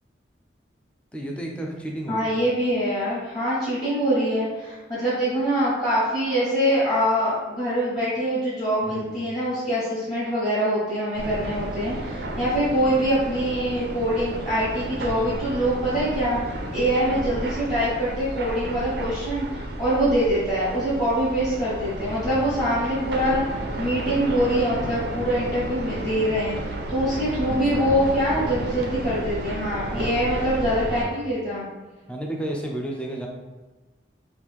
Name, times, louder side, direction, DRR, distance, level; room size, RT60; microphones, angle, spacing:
voice 1, 1.1-2.4 8.9-9.2 12.2-12.5 15.3-15.4 22.0-22.4 27.4-28.0 29.9-30.5 30.8-31.3 32.1-33.3, right 1 dB, 5° left, 0 dB, 0.4 m, -33 dB
voice 2, 2.1-31.6, equal, 25° left, -11 dB, 1.0 m, -24 dB
sound 1, 11.1-31.0, right 1 dB, 60° right, 0.4 m, -32 dB
3.1 x 2.4 x 3.5 m, 1.2 s
head